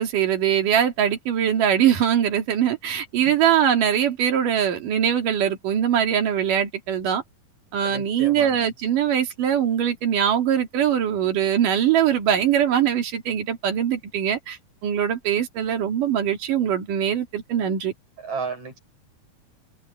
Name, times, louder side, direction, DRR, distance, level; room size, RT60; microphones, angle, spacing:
voice 1, 0.0-7.2 7.7-17.9, right 9 dB, 80° right, 4.1 m, -22 dB
voice 2, 7.8-8.7 18.2-18.8, right 5 dB, 60° right, 8.1 m, -33 dB
omnidirectional pair, 3.7 m